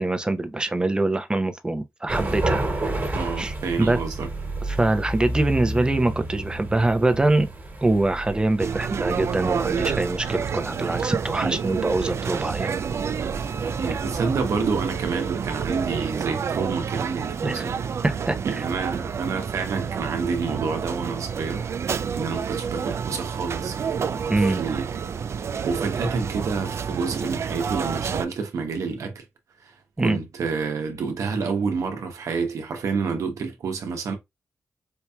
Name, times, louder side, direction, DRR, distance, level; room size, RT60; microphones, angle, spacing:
voice 1, 0.0-4.0 4.7-7.5 7.8-12.8 17.4-17.6 18.0-18.6 24.3-24.6 30.0-30.2, right 2 dB, 15° right, 0.6 m, -24 dB
sound 1, 2.1-16.3, right 2 dB, 35° right, 1.5 m, -33 dB
voice 2, 3.1-4.3 11.4-11.6 13.8-17.7 18.4-25.0 25.6-29.2 29.6-29.7 30.0-34.1, right 4 dB, 85° right, 0.9 m, -29 dB
sound 2, 8.6-28.3, right 7 dB, 60° right, 0.3 m, -29 dB
4.5 x 2.7 x 2.2 m
cardioid pair, 75°, 5 cm